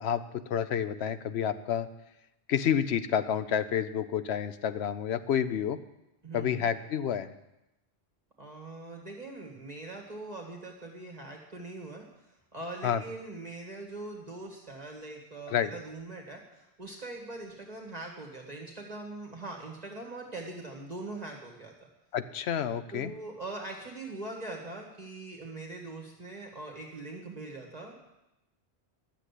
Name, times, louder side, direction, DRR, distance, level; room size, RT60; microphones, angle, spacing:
voice 1, 0.0-1.9 2.5-5.8 6.3-7.3 12.8-13.0 15.5-15.7 22.1-23.1, left 8 dB, 75° left, 11 dB, 1.0 m, -29 dB
voice 2, 6.2-6.7 8.4-12.0 12.5-21.9 22.9-28.1, right 2 dB, 40° right, 0 dB, 1.8 m, -42 dB
12.0 x 7.7 x 8.3 m, 0.92 s
omnidirectional pair, 1.1 m